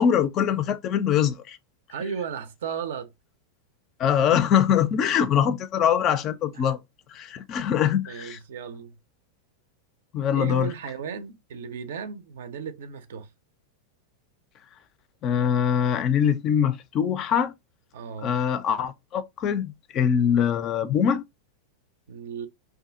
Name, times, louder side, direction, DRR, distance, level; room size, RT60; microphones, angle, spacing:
voice 1, 0.0-1.6 4.0-6.8 7.1-8.4 10.1-10.7 15.2-17.5 18.2-21.2, left 8 dB, 35° left, 0.3 m, -23 dB
voice 2, 1.9-3.1 6.5-6.7 8.1-9.0 10.3-13.3 17.9-18.4 22.1-22.5, right 7 dB, 60° right, 0.4 m, -35 dB
2.6 x 2.3 x 2.4 m
figure-of-eight pair, 90°, 0 cm